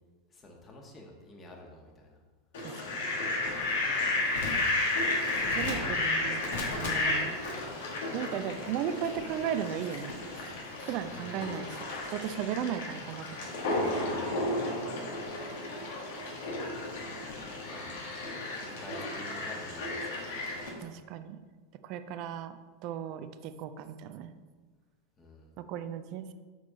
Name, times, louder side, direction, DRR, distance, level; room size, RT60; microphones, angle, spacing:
voice 1, 0.3-2.2 4.2-4.4 6.2-6.5 11.0-11.5 14.2-14.6 16.2-17.2 17.6-17.9 18.5-20.4 25.2-25.5, left 1 dB, 25° left, 0 dB, 1.6 m, -50 dB
Fowl, 2.5-20.7, left 2 dB, 60° left, 1.6 m, -33 dB
voice 2, 2.6-3.0 5.6-6.4 6.8-7.4 8.1-10.1 10.8-13.3 20.8-21.4 21.8-22.5 22.8-24.3 25.6-26.3, right 9 dB, 45° right, 11 dB, 0.5 m, -36 dB
6.3 x 6.0 x 4.0 m, 1.4 s
figure-of-eight pair, 85°, 0 cm